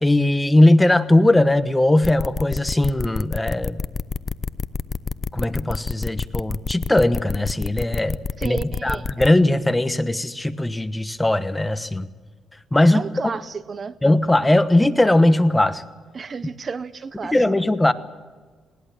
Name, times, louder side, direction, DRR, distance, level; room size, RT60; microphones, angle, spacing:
voice 1, 0.0-3.8 5.3-12.1 12.7-13.0 14.0-15.8 17.2-17.9, left 1 dB, 10° left, 11 dB, 1.2 m, -19 dB
sound 1, 2.0-9.3, left 4 dB, 35° left, 0.7 m, -27 dB
voice 2, 8.4-9.1 12.9-13.9 16.1-17.4, right 5 dB, 40° right, 15 dB, 0.7 m, -32 dB
20.5 x 19.0 x 7.4 m, 1.4 s
cardioid pair, 90°, 0 cm